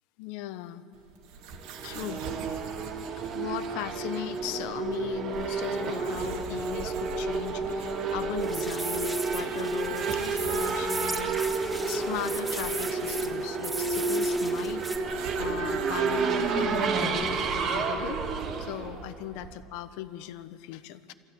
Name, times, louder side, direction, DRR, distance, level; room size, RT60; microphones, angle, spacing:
voice 1, 0.2-0.8 1.8-2.2 3.3-11.6 11.9-17.4 17.7-21.1, left 13 dB, 70° left, 12 dB, 1.1 m, -38 dB
sound 1, 0.9-19.0, right 5 dB, 65° right, 2.1 m, -46 dB
Race car auto racing / Accelerating revving vroom, 1.5-19.7, right 4 dB, 40° right, 2.2 m, -30 dB
sound 2, 8.4-15.0, right 2 dB, 10° right, 2.4 m, -37 dB
26.0 x 15.0 x 9.3 m, 2.6 s
cardioid pair, 150°, 0 cm